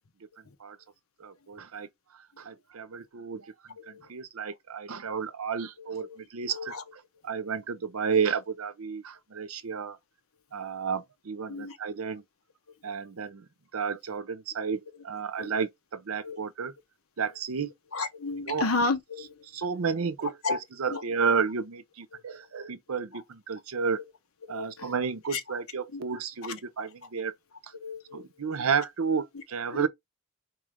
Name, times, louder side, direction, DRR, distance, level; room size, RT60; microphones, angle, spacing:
voice 1, 1.2-1.9 2.4-6.7 7.2-10.0 10.5-12.2 12.8-13.5 13.7-16.7 17.2-17.7 18.5-18.7 19.5-24.0 24.5-27.3 28.1-29.9, right 6 dB, 80° right, 0.6 m, -32 dB
voice 2, 3.8-4.1 5.8-6.2 6.5-6.8 11.5-11.8 12.8-12.9 15.4-15.6 16.2-16.4 17.9-19.5 20.4-20.6 20.9-21.0 22.1-22.4 23.1-23.2 24.5-24.9 25.3-25.6 25.9-26.0 26.4-26.5 27.8-28.3 29.7-29.9, left 3 dB, 75° left, 1.0 m, -33 dB
4.4 x 3.2 x 3.6 m
head